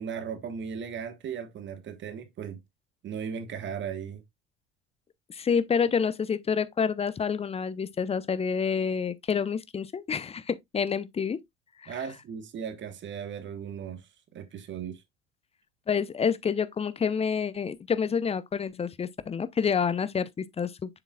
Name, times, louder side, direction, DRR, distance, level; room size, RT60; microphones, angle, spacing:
voice 1, 0.0-2.6 3.0-4.2 11.9-15.0, right 7 dB, 35° right, 1.4 m, -37 dB
voice 2, 5.3-11.4 11.8-11.9 15.9-21.0, left 6 dB, 20° left, 0.7 m, -28 dB
7.0 x 6.9 x 2.3 m
figure-of-eight pair, 65°, 33 cm